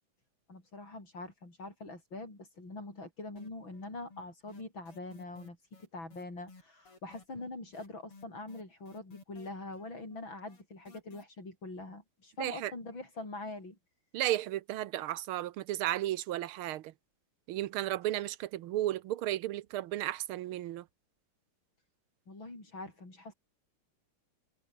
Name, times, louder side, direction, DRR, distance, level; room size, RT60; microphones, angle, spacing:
voice 1, 0.5-13.8 22.3-23.3, left 2 dB, 60° left, 8.5 m, -44 dB
sound 1, 3.4-3.9 4.1-11.2, left 3 dB, 90° left, 6.3 m, -55 dB
voice 2, 12.4-12.7 14.1-16.9 17.5-20.9, right 14 dB, 80° right, 1.6 m, -34 dB
omnidirectional pair, 2.4 m